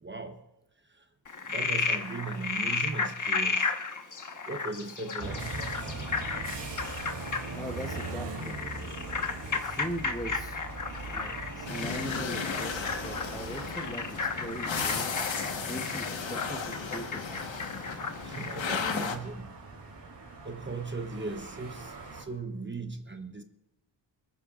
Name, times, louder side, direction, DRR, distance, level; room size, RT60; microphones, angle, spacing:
voice 1, 0.0-0.4 0.9-1.0 1.5-3.7 4.5-5.9 18.2-19.5 20.4-23.4, right 3 dB, 25° right, 0.9 m, -38 dB
Frog, 1.2-18.7, left 4 dB, 40° left, 1.3 m, -34 dB
sound 1, 5.2-22.2, right 3 dB, 65° right, 3.4 m, -41 dB
voice 2, 7.5-8.7 9.5-10.8 11.1-15.2 15.7-17.2, equal, 10° left, 0.9 m, -40 dB
sound 2, 11.7-19.2, left 5 dB, 75° left, 1.4 m, -35 dB
26.0 x 14.0 x 2.5 m
wide cardioid pair, 110°, 45 cm